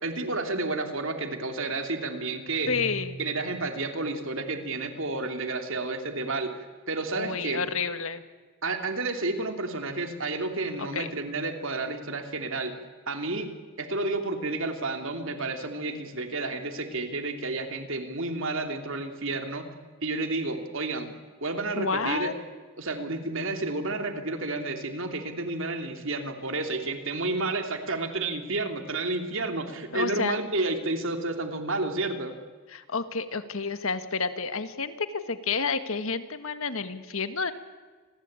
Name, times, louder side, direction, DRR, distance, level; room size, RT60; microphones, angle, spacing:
voice 1, 0.0-2.7 3.2-6.5 6.9-7.7 8.6-12.7 13.1-13.5 13.8-19.7 20.0-21.1 21.4-22.3 22.8-32.3, right 2 dB, 60° right, 5 dB, 3.0 m, -31 dB
Guitar, 2.5-4.2, right 2 dB, 5° right, 6.9 m, -42 dB
voice 2, 2.7-3.2 7.1-8.2 10.8-11.1 21.8-22.3 29.9-30.4 32.7-37.5, left 4 dB, 70° left, 10 dB, 1.7 m, -30 dB
29.0 x 21.5 x 8.9 m, 1.4 s
head